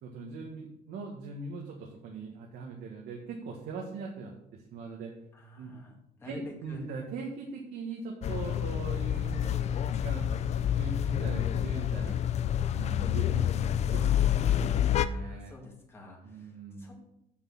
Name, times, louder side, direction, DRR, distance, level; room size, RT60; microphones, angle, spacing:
voice 1, 0.0-5.1 5.6-5.7 6.2-12.2 12.7-14.8 15.0-15.5 16.2-16.9, right 4 dB, 70° right, -1 dB, 1.7 m, -41 dB
voice 2, 5.3-6.8 15.0-16.9, left 3 dB, 15° left, -2 dB, 2.2 m, -49 dB
sound 1, 8.2-15.1, left 10 dB, 40° left, 0.4 m, -28 dB
7.7 x 6.6 x 6.4 m, 0.80 s
cardioid pair, 155°, 17 cm